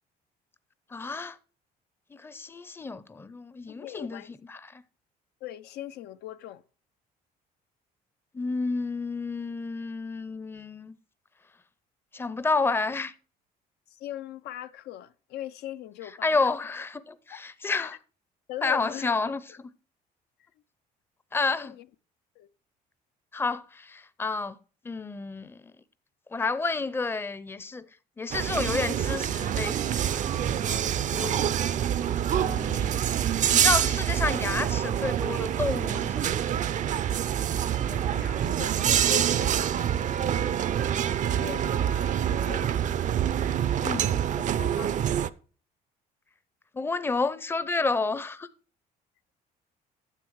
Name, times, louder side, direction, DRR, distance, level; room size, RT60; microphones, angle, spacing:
voice 1, 0.9-1.4 2.1-4.2 4.5-4.8 8.3-10.9 12.1-13.1 16.2-18.0 18.6-19.7 21.3-21.8 23.3-24.6 24.8-25.6 26.3-27.9 28.2-33.0 33.5-36.5 43.8-44.2 46.7-48.5, left 3 dB, 15° left, 0.5 m, -30 dB
voice 2, 3.7-4.3 5.4-6.6 13.9-16.5 17.3-17.4 17.8-17.9 18.5-19.2 21.6-21.9 22.4-22.5 30.8-30.9 32.8-32.9 37.7-39.8 41.2-42.7 44.5-45.0, left 13 dB, 75° left, 0.5 m, -41 dB
sound 1, 28.3-45.3, right 10 dB, 45° right, 0.5 m, -26 dB
9.8 x 6.9 x 4.6 m
cardioid pair, 110°, 17 cm